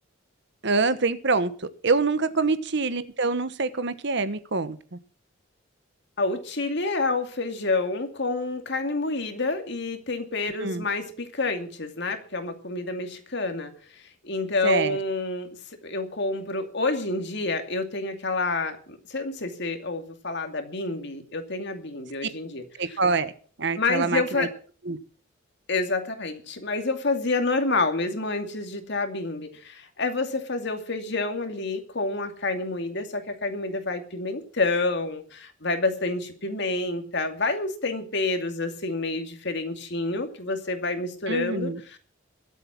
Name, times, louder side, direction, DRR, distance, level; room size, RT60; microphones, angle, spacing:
voice 1, 0.6-1.5 1.8-4.8 10.6-10.8 14.6-15.0 22.8-23.3 23.6-24.5 24.9-25.0 41.3-41.8, right 3 dB, 60° right, 13 dB, 1.2 m, -25 dB
voice 2, 6.2-13.7 14.2-15.5 15.8-23.0 23.8-24.5 25.7-42.0, left 3 dB, 60° left, 6 dB, 2.5 m, -28 dB
22.0 x 8.2 x 6.1 m, 0.43 s
head